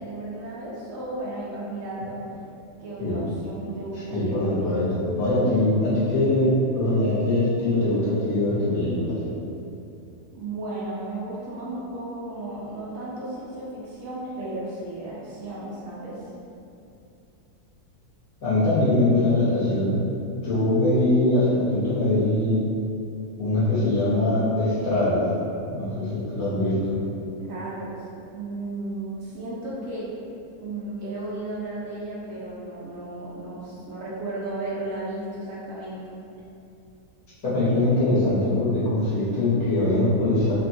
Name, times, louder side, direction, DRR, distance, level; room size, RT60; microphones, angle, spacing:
voice 1, 0.0-2.2 2.8-4.7 10.3-16.2 27.4-28.0 28.3-30.1 30.6-36.0, right 2 dB, 65° right, -8 dB, 1.0 m, -34 dB
voice 2, 3.9-9.2 18.4-20.0 20.3-22.6 23.4-25.3 25.7-26.8 37.4-40.7, left 1 dB, 70° left, -11 dB, 1.5 m, -22 dB
3.4 x 2.2 x 2.6 m, 2.6 s
omnidirectional pair, 1.6 m